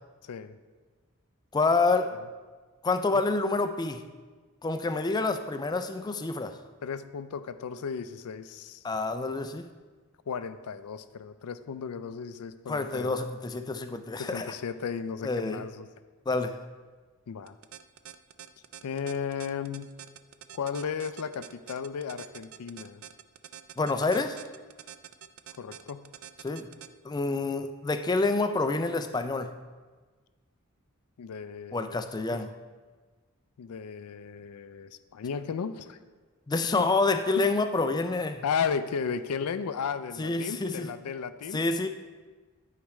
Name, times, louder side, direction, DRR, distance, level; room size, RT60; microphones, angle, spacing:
voice 1, 0.2-0.6 6.8-8.8 10.3-13.2 14.2-15.9 17.3-17.5 18.8-19.9 20.5-23.0 25.6-26.1 31.2-32.4 33.6-36.0 36.8-36.9 37.3-37.5 38.4-41.6, left 6 dB, 85° left, 12 dB, 0.4 m, -35 dB
voice 2, 1.5-2.1 2.8-4.0 4.6-6.6 8.8-9.7 12.7-14.5 15.2-15.6 16.3-16.6 23.8-24.4 26.4-26.7 27.0-29.5 31.7-32.5 36.5-38.4 40.2-40.9 41.5-41.9, left 3 dB, 20° left, 8 dB, 0.3 m, -28 dB
sound 1, 17.5-26.9, right 10 dB, 65° right, 0.4 m, -46 dB
11.5 x 4.8 x 3.1 m, 1.4 s
head